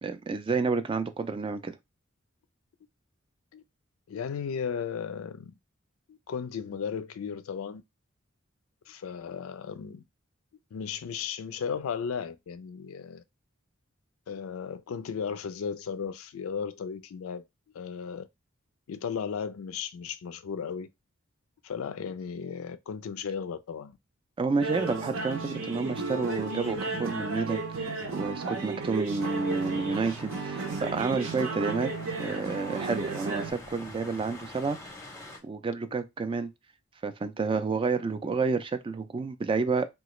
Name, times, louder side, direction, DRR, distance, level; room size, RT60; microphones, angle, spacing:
voice 1, 0.0-1.8 24.4-31.9 32.2-34.8 35.4-36.5 37.0-39.8, right 4 dB, 25° right, 0.3 m, -30 dB
voice 2, 4.1-5.5 6.1-7.8 8.9-10.0 10.7-13.2 14.3-17.4 17.7-18.3 18.9-20.9 21.6-24.0, left 6 dB, 90° left, 0.4 m, -35 dB
sound 1, 24.6-33.5, right 3 dB, 70° right, 0.7 m, -34 dB
sound 2, 29.2-35.4, left 2 dB, 15° left, 0.7 m, -45 dB
2.9 x 2.3 x 3.0 m
head